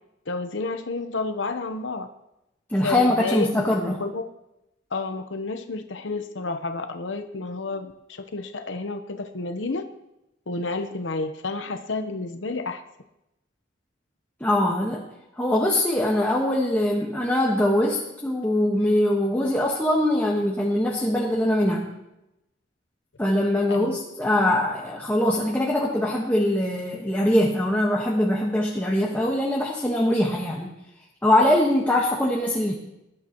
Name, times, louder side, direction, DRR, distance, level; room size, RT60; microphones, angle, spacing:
voice 1, 0.3-2.1 2.8-3.7 4.0-4.2 4.9-9.8 10.5-12.8 23.7-24.0, left 3 dB, 80° left, 7 dB, 1.0 m, -30 dB
voice 2, 2.7-4.0 14.4-15.0 15.4-21.9 23.2-30.7 31.2-32.7, left 1 dB, 10° left, -3 dB, 1.4 m, -22 dB
20.5 x 11.5 x 3.0 m, 0.89 s
head